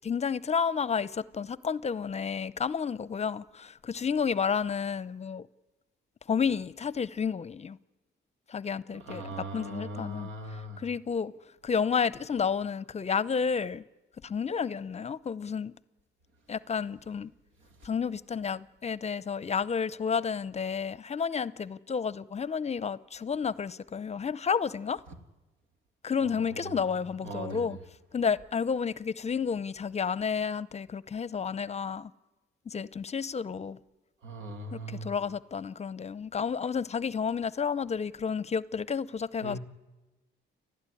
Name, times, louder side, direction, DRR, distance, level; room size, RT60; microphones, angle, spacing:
voice 1, 0.0-5.5 6.3-7.8 8.5-10.3 10.8-11.3 11.6-13.8 14.2-15.7 16.5-17.3 17.8-25.0 26.0-27.8 28.1-32.1 32.7-33.8 34.7-39.6, left 6 dB, 35° left, 0.6 m, -31 dB
voice 2, 8.9-10.8 17.8-17.9 25.1-25.2 26.2-26.9 27.2-27.8 34.2-35.1 39.4-39.6, right 2 dB, 85° right, 2.4 m, -40 dB
30.0 x 12.5 x 9.9 m
cardioid pair, 90°, 20 cm